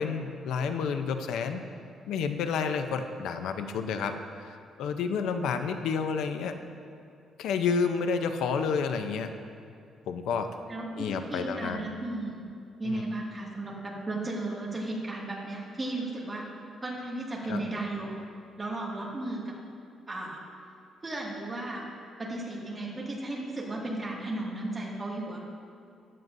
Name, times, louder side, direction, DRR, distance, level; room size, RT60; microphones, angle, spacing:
voice 1, 0.0-1.6 2.1-6.6 7.4-9.3 10.1-10.5 11.0-11.8 12.8-13.0 17.5-17.6, left 5 dB, 85° left, 7 dB, 0.6 m, -30 dB
voice 2, 10.7-12.4 12.8-16.4 16.8-18.1 18.6-19.5 20.1-20.4 21.0-21.8 22.2-25.4, right 2 dB, 15° right, -4 dB, 2.1 m, -35 dB
15.0 x 11.0 x 2.7 m, 2.5 s
cardioid pair, 155°, 0 cm